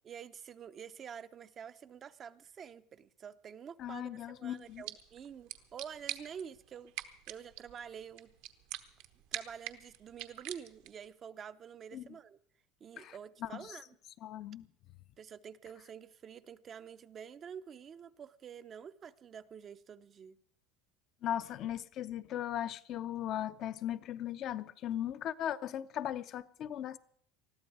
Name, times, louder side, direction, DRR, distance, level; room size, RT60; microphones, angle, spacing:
voice 1, 0.0-8.3 9.3-12.4 12.8-14.0 15.2-20.4, right 7 dB, 30° right, 0.6 m, -48 dB
voice 2, 3.8-4.8 11.9-12.1 13.0-13.8 14.2-14.7 21.2-27.0, left 11 dB, 45° left, 0.6 m, -38 dB
sound 1, 4.6-11.1, right 13 dB, 70° right, 1.1 m, -46 dB
20.5 x 13.5 x 4.7 m
supercardioid pair, 135°, 0 cm